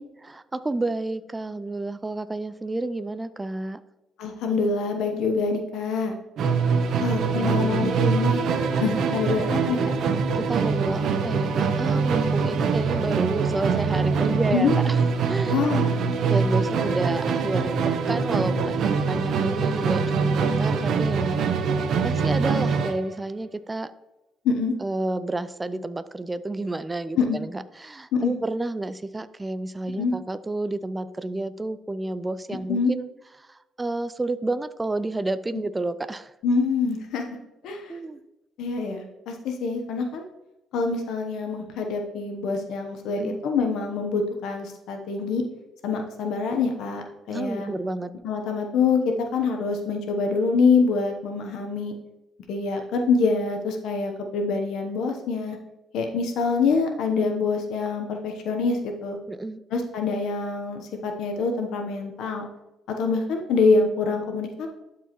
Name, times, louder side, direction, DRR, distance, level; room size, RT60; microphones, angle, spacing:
voice 1, 0.2-3.8 7.0-8.0 10.3-15.0 15.3-15.7 16.3-21.4 22.0-23.9 24.8-33.1 33.5-36.3 37.9-38.2 43.1-43.4 47.3-48.1 59.3-59.6, right 2 dB, 15° right, 13 dB, 0.3 m, -30 dB
voice 2, 4.2-6.2 7.0-8.4 8.8-9.8 14.3-14.7 15.5-16.0 24.4-24.7 27.2-27.4 28.1-28.3 30.0-30.1 32.7-32.9 35.5-35.6 36.4-37.3 37.6-37.9 38.6-40.2 40.7-45.4 45.8-47.7 48.2-51.9 52.5-55.6 55.9-59.2 59.7-62.5 63.0-64.7, left 4 dB, 80° left, 4 dB, 0.9 m, -25 dB
Musical instrument, 6.4-23.0, right 5 dB, 70° right, 0.8 m, -24 dB
12.0 x 4.7 x 3.0 m, 0.98 s
cardioid pair, 95°, 0 cm